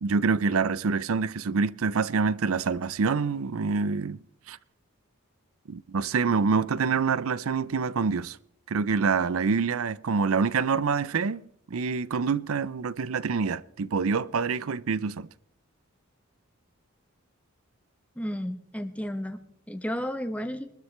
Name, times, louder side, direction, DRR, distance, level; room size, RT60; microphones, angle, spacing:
voice 1, 0.0-4.6 5.7-8.4 8.7-15.3, right 5 dB, 80° right, 0.5 m, -26 dB
voice 2, 18.2-20.7, equal, 5° left, 1.0 m, -33 dB
23.5 x 13.0 x 3.3 m
head